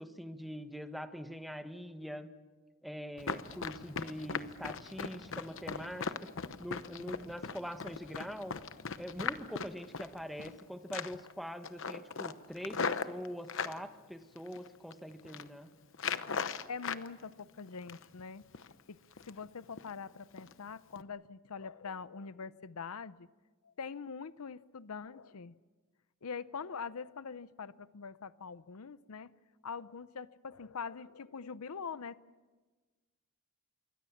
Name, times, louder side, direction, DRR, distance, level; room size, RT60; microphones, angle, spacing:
voice 1, 0.0-2.3 2.8-6.3 6.6-8.6 9.0-15.7, equal, ahead, 8 dB, 1.2 m, -43 dB
Run, 3.2-10.6 10.9-11.3 11.6-13.8 14.4-14.9 15.2-15.5 15.9-17.1 17.4-18.2 18.5-18.7 19.1-19.5 19.8-19.9 20.4-20.5 20.9-21.0, left 5 dB, 60° left, 0.9 m, -38 dB
voice 2, 16.7-19.0 19.2-23.3 23.6-25.6 26.2-29.3 29.6-32.2, left 5 dB, 85° left, 16 dB, 0.7 m, -44 dB
26.5 x 23.0 x 7.2 m, 1.3 s
head